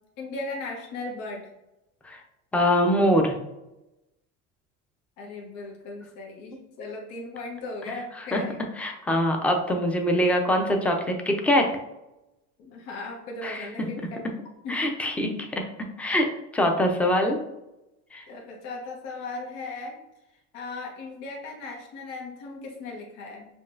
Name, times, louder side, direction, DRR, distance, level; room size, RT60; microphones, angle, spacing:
voice 1, 0.2-1.5 5.2-8.5 12.6-14.2 14.6-14.9 18.3-20.0 20.5-23.5, left 3 dB, 70° left, -1 dB, 1.1 m, -37 dB
voice 2, 2.5-3.4 8.3-8.4 8.8-11.7 13.4-13.7 14.7-15.6 16.0-16.3 16.5-17.4 18.1-18.2, equal, 5° left, 2 dB, 0.5 m, -23 dB
5.1 x 2.4 x 2.5 m, 0.92 s
supercardioid pair, 100°, 37 cm